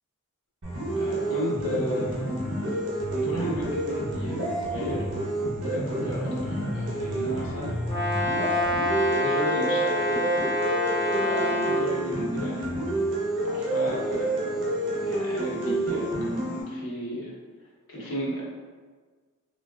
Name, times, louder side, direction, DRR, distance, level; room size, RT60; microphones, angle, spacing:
sound 1, 0.6-16.6, right 1 dB, 55° right, 0.8 m, -29 dB
voice 1, 0.9-2.3 3.1-5.1 5.6-10.3 11.1-13.1 13.4-17.3 17.9-18.4, equal, 70° left, -6 dB, 0.9 m, -34 dB
Brass instrument, 7.9-11.9, left 2 dB, 15° left, 1.1 m, -27 dB
3.4 x 2.4 x 2.3 m, 1.5 s
head